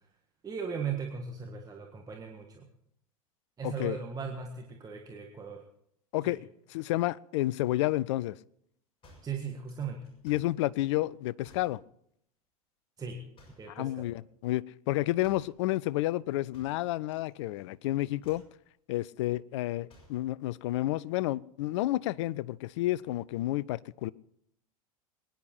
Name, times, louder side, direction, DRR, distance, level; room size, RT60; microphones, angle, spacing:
voice 1, 0.4-2.7 3.6-5.6 6.2-6.4 9.2-10.0 13.0-13.2 13.6-14.1, right 6 dB, 20° right, 1.7 m, -38 dB
voice 2, 3.6-4.0 6.1-8.4 10.2-11.8 13.7-18.4 18.9-24.1, left 16 dB, 50° left, 0.5 m, -30 dB
sound 1, 9.0-10.6 11.4-11.8 13.3-13.8 15.2-15.6 16.5-17.3 17.6-17.8 18.2-18.6 19.9-20.3, left 1 dB, 30° left, 6.9 m, -58 dB
22.5 x 10.5 x 4.4 m
figure-of-eight pair, 85°, 19 cm